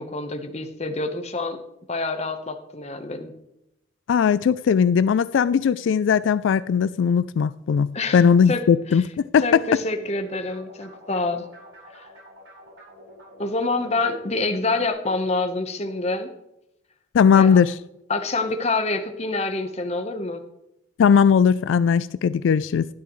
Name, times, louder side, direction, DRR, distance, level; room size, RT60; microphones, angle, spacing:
voice 1, 0.0-1.6 1.9-3.3 7.9-8.2 8.5-8.6 8.9-9.0 9.4-11.5 11.9-12.1 13.4-16.3 17.3-17.6 18.1-20.4, left 3 dB, 35° left, 1.1 m, -27 dB
voice 2, 4.1-7.9 8.1-9.6 17.1-17.8 21.0-22.9, left 7 dB, 85° left, 0.3 m, -18 dB
sound 1, 9.8-14.9, equal, 90° right, 4.8 m, -46 dB
12.5 x 10.5 x 3.1 m
head